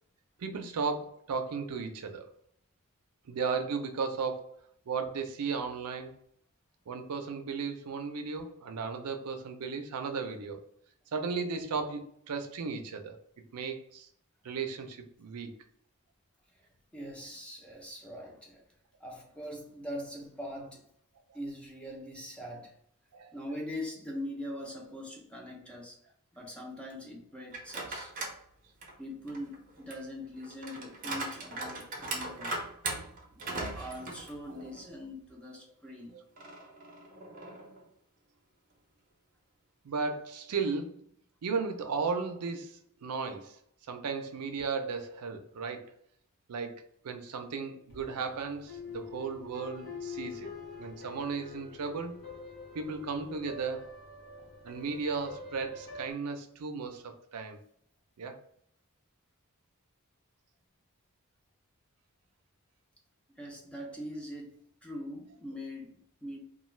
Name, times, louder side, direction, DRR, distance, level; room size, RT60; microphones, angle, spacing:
voice 1, 0.4-2.3 3.3-4.6 4.9-6.1 6.9-10.6 11.1-13.2 13.5-14.1 14.4-15.5 23.1-23.3 36.1-36.2 39.8-41.0 41.4-43.6 43.9-45.8 46.5-50.5 50.8-52.2 52.7-53.9 54.6-57.6 58.2-58.4, right 5 dB, 85° right, 6 dB, 0.5 m, -35 dB
voice 2, 16.6-18.6 19.0-20.8 21.3-22.7 23.3-26.0 26.3-28.1 29.0-32.6 33.4-36.2 63.4-66.4, equal, 5° left, -2 dB, 0.6 m, -42 dB
sound 1, 27.5-28.4 28.8-34.9 35.3-35.4 36.4-37.8, right 2 dB, 35° right, 0.6 m, -40 dB
sound 2, 47.9-56.1, left 4 dB, 55° left, 0.8 m, -46 dB
2.4 x 2.3 x 3.1 m, 0.68 s
head